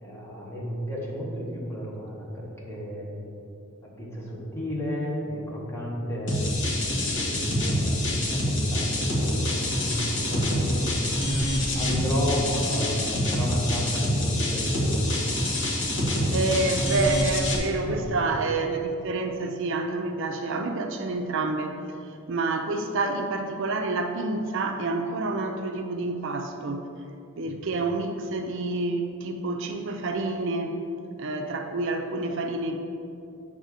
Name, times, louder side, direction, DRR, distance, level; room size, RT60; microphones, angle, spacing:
voice 1, 0.0-3.4 4.0-6.6 6.8-10.9 11.7-14.9 15.1-15.3 17.8-18.3 27.4-27.6, equal, 10° left, -5 dB, 1.5 m, -32 dB
sound 1, 6.3-17.6, left 1 dB, 60° left, 1.2 m, -26 dB
voice 2, 16.3-21.8 22.3-26.8 27.4-30.8 31.2-32.8, right 3 dB, 60° right, 5 dB, 0.5 m, -28 dB
7.8 x 3.6 x 6.5 m, 2.7 s
head